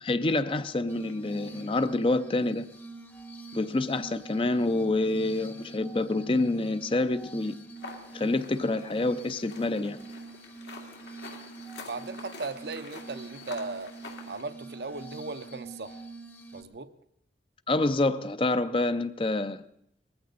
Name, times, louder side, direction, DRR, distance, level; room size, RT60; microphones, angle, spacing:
voice 1, 0.0-2.7 3.5-7.6 8.1-10.0 17.7-19.6, left 2 dB, 30° left, 12 dB, 0.5 m, -27 dB
Glass, 0.9-16.6, right 3 dB, 10° left, 0.8 m, -45 dB
sound 1, 7.8-14.4, left 3 dB, 85° left, 2.5 m, -47 dB
voice 2, 11.9-13.9 14.3-16.0 16.5-16.9, right 3 dB, 65° right, 10 dB, 0.7 m, -37 dB
20.0 x 15.0 x 4.0 m, 0.74 s
head